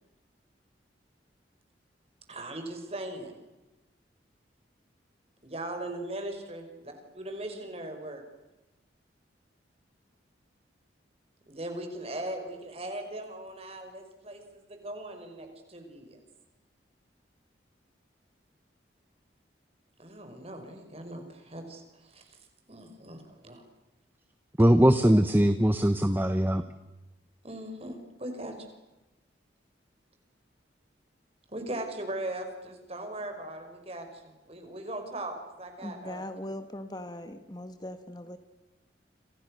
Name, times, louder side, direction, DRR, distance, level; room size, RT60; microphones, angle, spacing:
voice 1, 2.3-3.4 5.4-8.2 11.5-16.2 20.0-22.4 22.7-23.6 27.4-28.5 31.5-36.2, right 1 dB, 35° right, 5.7 m, -39 dB
voice 2, 24.6-26.6, equal, 10° right, 1.1 m, -21 dB
voice 3, 35.8-38.4, left 1 dB, 20° left, 1.6 m, -40 dB
29.5 x 27.5 x 6.6 m
head